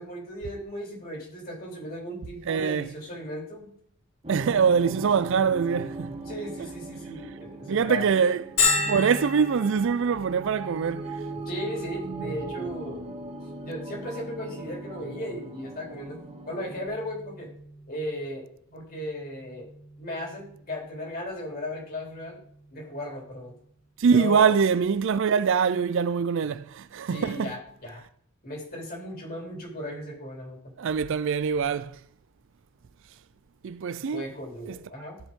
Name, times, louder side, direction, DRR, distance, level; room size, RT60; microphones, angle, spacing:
voice 1, 0.0-3.7 6.1-8.3 11.3-13.1 13.6-16.2 16.5-17.5 17.9-19.7 20.0-22.4 22.7-23.5 24.1-24.5 27.1-28.0 28.4-30.6 34.1-35.2, left 1 dB, 45° left, 3.3 m, -36 dB
voice 2, 2.5-2.9 4.3-6.1 7.7-8.4 8.9-11.2 24.0-27.6 30.8-32.0 33.6-34.2 34.7-34.8, right 6 dB, 60° right, 0.4 m, -24 dB
sound 1, 4.2-16.9, right 3 dB, 25° right, 1.1 m, -39 dB
Bell, 8.6-24.0, left 3 dB, 65° left, 3.5 m, -36 dB
15.0 x 5.4 x 3.7 m
head